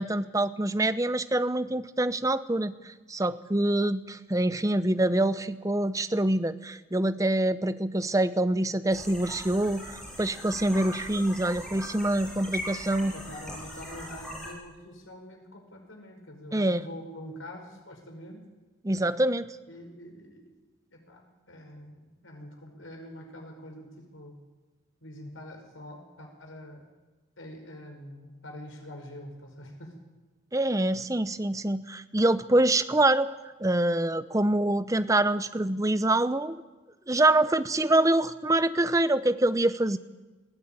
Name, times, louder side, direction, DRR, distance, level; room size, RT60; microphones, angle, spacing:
voice 1, 0.0-13.1 16.5-16.8 18.8-19.5 30.5-33.3 33.6-36.6 37.1-40.0, right 1 dB, 15° right, 13 dB, 0.7 m, -25 dB
sound 1, 8.9-14.5, equal, ahead, 7.1 m, -40 dB
voice 2, 12.9-18.4 19.7-20.6 20.9-24.3 25.0-26.9 27.4-30.0, left 1 dB, 85° left, 3 dB, 5.4 m, -45 dB
20.5 x 16.0 x 9.1 m, 1.2 s
head